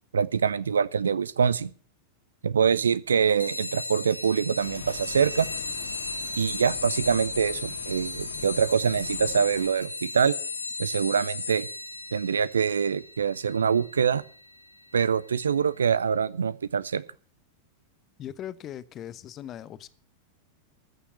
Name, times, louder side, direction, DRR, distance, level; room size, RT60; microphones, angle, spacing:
voice 1, 0.1-1.7 2.4-5.5 6.3-10.3 10.8-11.7 12.1-14.2 14.9-17.0, right 6 dB, 70° right, 0.6 m, -24 dB
sound 1, 3.4-15.5, left 4 dB, 80° left, 1.3 m, -36 dB
sound 2, 4.6-9.7, left 6 dB, 60° left, 1.9 m, -43 dB
voice 2, 18.2-19.9, left 11 dB, 30° left, 0.8 m, -39 dB
14.5 x 6.9 x 8.4 m
figure-of-eight pair, 90°, 0 cm